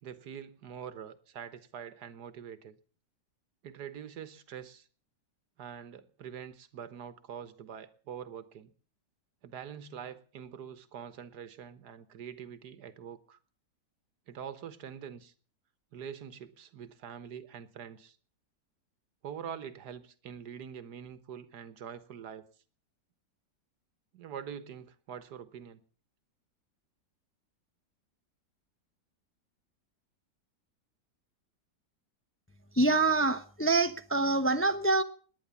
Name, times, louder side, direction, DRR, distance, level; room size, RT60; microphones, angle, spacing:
voice 1, 0.0-2.8 3.6-4.9 5.6-8.7 9.4-13.4 14.3-15.3 15.9-18.2 19.2-22.4 24.1-25.8, right 8 dB, 65° right, 13 dB, 1.7 m, -44 dB
voice 2, 32.7-35.0, right 2 dB, 20° left, 9 dB, 0.3 m, -26 dB
18.5 x 10.5 x 7.1 m, 0.43 s
omnidirectional pair, 1.9 m